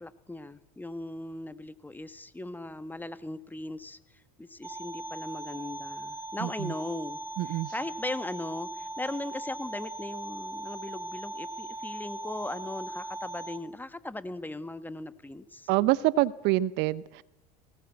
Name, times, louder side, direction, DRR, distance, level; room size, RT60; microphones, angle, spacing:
voice 1, 0.0-4.0 4.4-15.7, left 2 dB, 10° left, 12 dB, 1.4 m, -38 dB
sound 1, 4.6-13.6, right 1 dB, 10° right, 1.5 m, -39 dB
voice 2, 6.4-6.7 7.4-7.7 15.7-17.2, right 17 dB, 55° right, 20 dB, 0.7 m, -26 dB
20.5 x 18.0 x 8.4 m, 0.94 s
hypercardioid pair, 80°, 21 cm